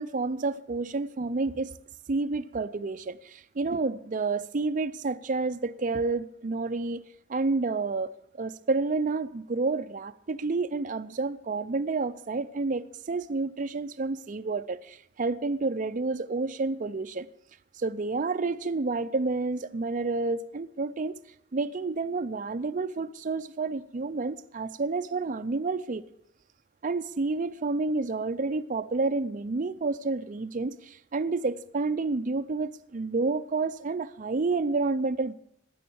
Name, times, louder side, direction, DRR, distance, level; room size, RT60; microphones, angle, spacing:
voice 1, 0.0-1.7 2.1-7.0 7.3-17.3 17.8-21.1 21.5-26.0 26.8-35.3, right 3 dB, 40° right, 0.5 m, -29 dB
16.5 x 10.0 x 7.0 m
head